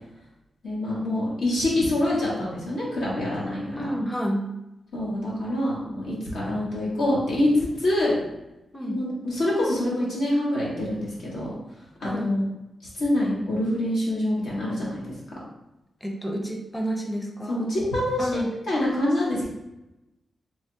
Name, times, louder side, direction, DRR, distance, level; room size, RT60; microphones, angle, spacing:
voice 1, 0.6-3.9 4.9-8.1 8.8-11.5 12.0-12.4 12.9-15.1 17.5-19.4, left 1 dB, 90° left, -6 dB, 1.3 m, -25 dB
voice 2, 3.8-4.5 8.7-9.0 12.0-12.4 16.0-17.7 18.2-18.5, equal, 10° left, 1 dB, 0.5 m, -29 dB
3.3 x 3.1 x 2.8 m, 0.94 s
cardioid pair, 65°, 0 cm